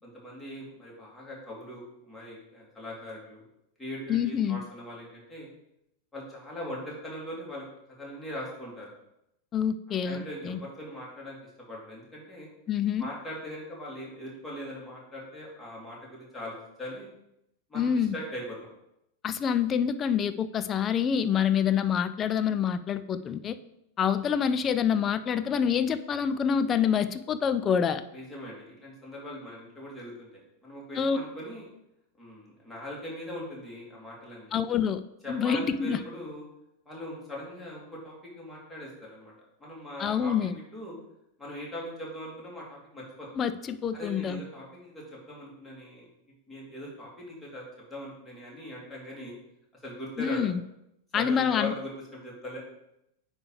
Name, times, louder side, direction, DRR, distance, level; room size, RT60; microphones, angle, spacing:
voice 1, 0.0-3.4 3.8-5.5 6.1-7.6 8.0-8.9 10.0-11.4 11.7-12.5 13.0-17.1 17.7-18.6 28.1-31.7 32.2-34.6 35.2-36.4 36.9-39.3 39.6-40.9 41.4-43.3 43.9-46.1 46.5-49.3 49.8-50.4 51.1-52.6, left 1 dB, 5° left, -5 dB, 2.7 m, -40 dB
voice 2, 4.1-4.6 9.5-10.6 12.7-13.1 17.7-18.2 19.2-23.6 24.0-28.0 31.0-31.2 34.5-35.0 35.3-36.0 40.0-40.6 43.4-44.4 50.2-50.6 51.1-51.7, left 7 dB, 25° left, 11 dB, 0.4 m, -26 dB
9.4 x 3.4 x 4.8 m, 0.82 s
figure-of-eight pair, 90°, 0 cm